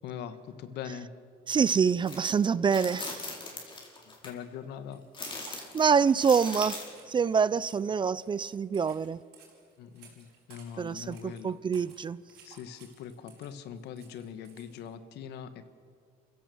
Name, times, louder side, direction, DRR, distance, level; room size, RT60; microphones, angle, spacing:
voice 1, 0.0-1.1 3.5-3.6 4.0-5.0 9.8-11.6 12.4-15.8, left 8 dB, 80° left, 11 dB, 1.5 m, -42 dB
voice 2, 1.5-3.3 5.5-6.8 7.1-9.2 10.8-12.2, right 6 dB, 30° right, 19 dB, 0.5 m, -26 dB
sound 1, 2.1-2.3 2.7-4.3 5.1-7.0, left 3 dB, 30° left, 4.7 m, -40 dB
sound 2, 4.9-14.9, right 7 dB, 90° right, 5.4 m, -57 dB
27.5 x 16.0 x 7.0 m, 2.2 s
cardioid pair, 110°, 17 cm